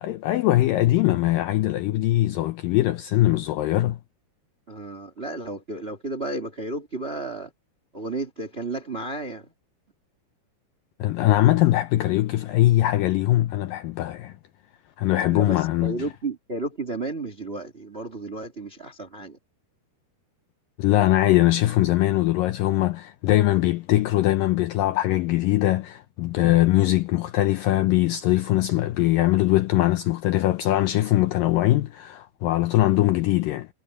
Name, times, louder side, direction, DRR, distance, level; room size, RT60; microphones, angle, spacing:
voice 1, 0.0-4.0 11.0-14.3 15.0-16.0 20.8-33.7, left 15 dB, 80° left, 2.0 m, -21 dB
voice 2, 4.7-7.5 7.9-9.5 15.3-19.4, right 2 dB, 25° right, 1.4 m, -33 dB
omnidirectional pair, 4.7 m